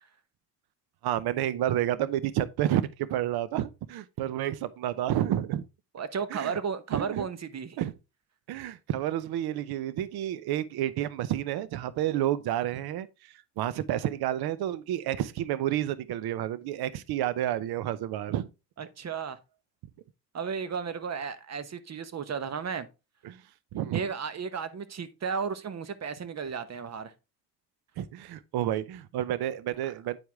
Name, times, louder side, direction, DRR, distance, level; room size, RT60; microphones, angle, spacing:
voice 1, 1.0-5.6 6.3-6.6 6.9-7.3 7.8-7.9 8.5-18.5 23.2-23.4 23.7-24.0 28.0-30.2, right 12 dB, 65° right, 0.7 m, -30 dB
voice 2, 5.9-7.8 18.8-19.4 20.3-22.9 23.9-27.1, right 6 dB, 40° right, 1.1 m, -34 dB
9.0 x 4.7 x 3.4 m
supercardioid pair, 75°, 40 cm